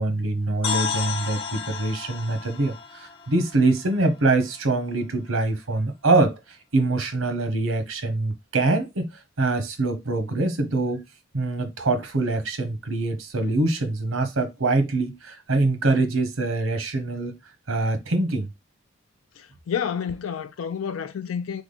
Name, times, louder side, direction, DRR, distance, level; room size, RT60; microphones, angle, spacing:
voice 1, 0.0-11.0 11.3-17.4 17.7-18.5, right 2 dB, 90° right, 1.0 m, -24 dB
sound 1, 0.6-4.6, left 6 dB, 25° left, 0.7 m, -33 dB
voice 2, 19.4-21.6, left 7 dB, 85° left, 0.4 m, -30 dB
3.6 x 3.5 x 3.8 m
head